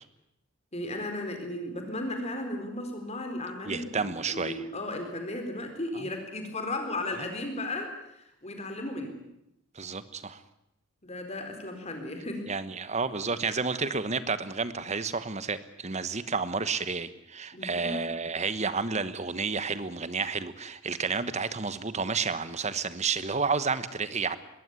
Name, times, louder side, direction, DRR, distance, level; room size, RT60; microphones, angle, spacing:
voice 1, 0.7-9.2 11.0-12.5 17.5-18.1, left 1 dB, 30° left, 5 dB, 4.3 m, -35 dB
voice 2, 3.7-4.6 5.9-6.1 7.2-7.3 9.7-10.4 12.5-24.4, right 4 dB, 30° right, 14 dB, 1.2 m, -31 dB
22.0 x 16.0 x 9.8 m, 0.83 s
head